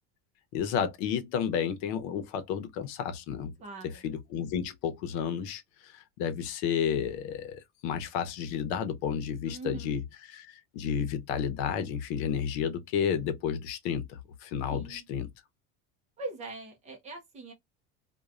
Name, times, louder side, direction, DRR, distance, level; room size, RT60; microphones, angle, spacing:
voice 1, 0.5-3.5 4.0-10.0 10.3-15.3, left 8 dB, 75° left, 0.8 m, -31 dB
voice 2, 3.6-4.0 9.5-10.0 14.7-15.0 16.2-17.5, right 3 dB, 20° right, 0.6 m, -41 dB
3.0 x 2.3 x 2.3 m
cardioid pair, 175°, 34 cm